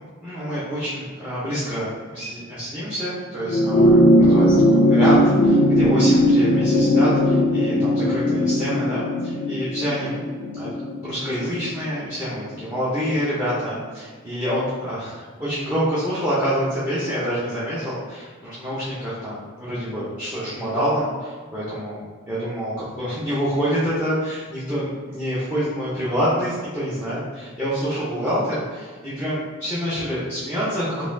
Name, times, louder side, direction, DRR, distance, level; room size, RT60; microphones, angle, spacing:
voice 1, 0.2-10.1 10.5-10.7 11.0-31.0, equal, 10° right, -10 dB, 0.7 m, -27 dB
sound 1, 3.4-12.1 13.3-13.4, equal, 55° left, 0.4 m, -18 dB
4.0 x 2.7 x 2.6 m, 1.5 s
head